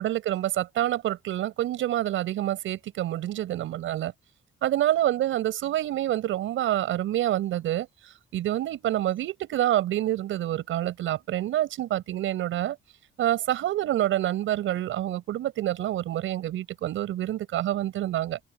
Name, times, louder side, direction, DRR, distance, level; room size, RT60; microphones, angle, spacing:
voice 1, 0.0-4.1 4.6-12.8 13.2-18.4, right 13 dB, 80° right, 6.7 m, -27 dB
cardioid pair, 90°, 20 cm